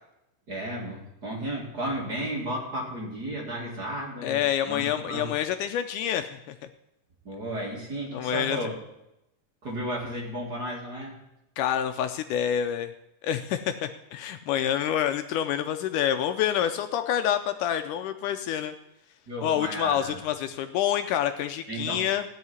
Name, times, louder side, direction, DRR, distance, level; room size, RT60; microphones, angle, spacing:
voice 1, 0.5-5.3 7.2-8.8 9.6-11.2 19.3-20.2 21.7-22.0, right 1 dB, 35° right, -2 dB, 2.4 m, -33 dB
voice 2, 4.2-6.6 8.1-8.6 11.6-12.9 13.2-18.7 19.4-22.2, left 10 dB, 80° left, 8 dB, 2.0 m, -27 dB
16.5 x 5.6 x 9.4 m, 0.89 s
omnidirectional pair, 3.8 m